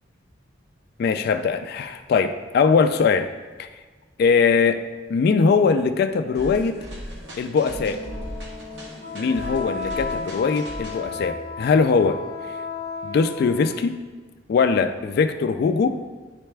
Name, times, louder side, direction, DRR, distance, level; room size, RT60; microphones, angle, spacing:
voice 1, 1.0-3.3 3.6-3.7 4.2-4.8 5.1-6.8 7.4-8.0 9.1-12.2 13.0-14.0 14.5-16.0, left 5 dB, 55° left, 8 dB, 0.3 m, -21 dB
sound 1, 6.3-11.8, equal, 70° right, 1.3 m, -38 dB
Wind instrument woodwind instrument, 7.6-13.8, left 4 dB, 30° left, 0.7 m, -34 dB
9.6 x 3.3 x 3.3 m, 1.4 s
head